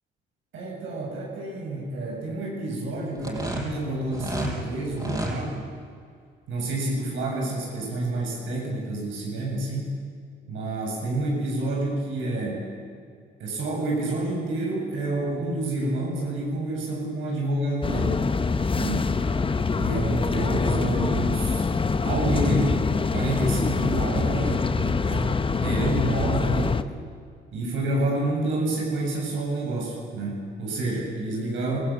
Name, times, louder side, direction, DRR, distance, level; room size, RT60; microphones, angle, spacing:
voice 1, 0.5-5.7 6.5-10.0 10.5-12.7 13.4-18.2 18.8-19.1 19.7-21.7 22.0-22.8 23.1-26.8 27.5-31.8, right 2 dB, 80° right, -2 dB, 7.2 m, -28 dB
sound 1, 3.1-4.5 4.9-5.4, right 1 dB, 20° right, 6.1 m, -30 dB
sound 2, 17.8-26.8, left 4 dB, 25° left, 1.0 m, -25 dB
25.5 x 15.5 x 8.9 m, 2.1 s
cardioid pair, 90°, 20 cm